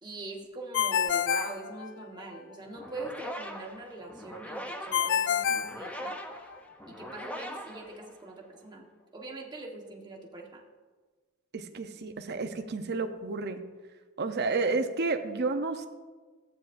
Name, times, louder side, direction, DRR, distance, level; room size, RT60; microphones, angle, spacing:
voice 1, 0.0-6.2 6.9-8.8 9.1-10.6, right 2 dB, 20° right, -1 dB, 1.2 m, -42 dB
Ringtone, 0.7-2.4 4.9-6.5, left 8 dB, 55° left, 0.4 m, -28 dB
sound 1, 2.7-8.6, equal, 5° left, 0.6 m, -42 dB
voice 2, 11.5-13.6 14.2-15.9, right 3 dB, 50° right, 7 dB, 0.7 m, -31 dB
14.5 x 8.9 x 2.6 m, 1.4 s
head